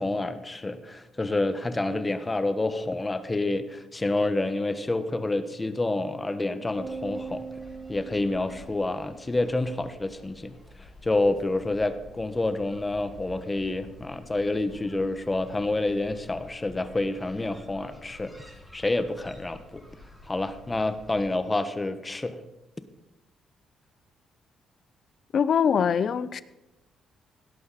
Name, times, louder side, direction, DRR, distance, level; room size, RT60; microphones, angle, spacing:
voice 1, 0.0-7.5 7.9-10.5 10.8-18.4 18.7-19.8 20.2-22.4, left 2 dB, 20° left, 11 dB, 1.2 m, -28 dB
sound 1, 6.7-21.3, left 1 dB, ahead, 5.4 m, -50 dB
sound 2, 6.8-9.3, right 5 dB, 55° right, 1.5 m, -40 dB
voice 2, 25.3-26.4, left 7 dB, 55° left, 16 dB, 0.7 m, -23 dB
17.5 x 11.0 x 4.3 m, 0.99 s
cardioid pair, 90°, 0 cm